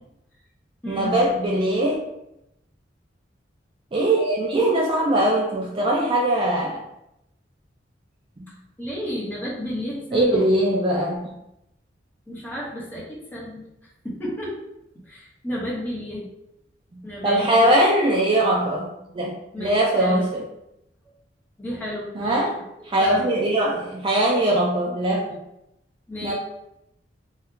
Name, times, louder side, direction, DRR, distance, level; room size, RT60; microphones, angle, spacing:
voice 1, 0.9-2.0 3.9-6.8 10.1-11.3 16.9-20.4 22.2-22.6 22.8-25.4 26.2-26.3, right 1 dB, 30° right, -2 dB, 0.4 m, -21 dB
voice 2, 8.5-10.8 12.3-13.6 14.0-14.6 15.0-16.3 17.0-17.9 19.5-20.2 21.6-22.4 23.0-23.2 26.1-26.3, equal, 10° left, -6 dB, 1.0 m, -32 dB
2.8 x 2.3 x 3.5 m, 0.84 s
head